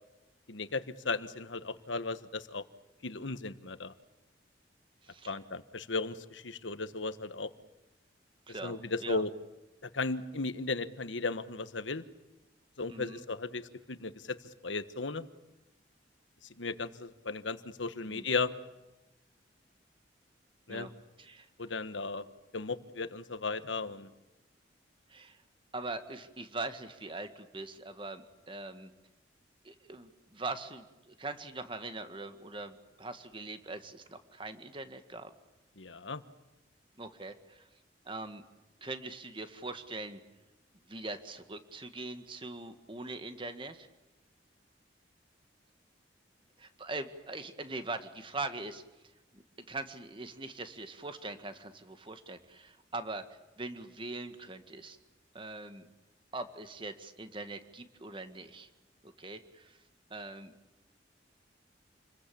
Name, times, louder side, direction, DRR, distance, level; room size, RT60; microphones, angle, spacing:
voice 1, 0.5-2.6 3.0-3.9 5.3-7.5 8.6-9.3 9.8-12.0 12.8-14.4 14.6-15.3 16.6-18.5 20.7-20.9 21.6-22.3 22.5-24.1 35.8-36.2, left 3 dB, 90° left, 12 dB, 1.4 m, -36 dB
voice 2, 5.0-5.4 8.5-9.2 12.9-13.2 18.1-18.3 20.7-20.9 21.2-21.5 25.1-25.4 25.7-28.9 29.6-35.3 37.0-37.6 38.1-38.4 38.8-40.2 40.9-43.9 46.6-48.8 49.3-49.4 49.7-53.2 53.6-55.0 55.3-55.9 56.3-58.7 59.0-59.8 60.1-60.5, right 2 dB, 25° right, 9 dB, 1.9 m, -42 dB
29.0 x 22.0 x 8.6 m, 1.0 s
head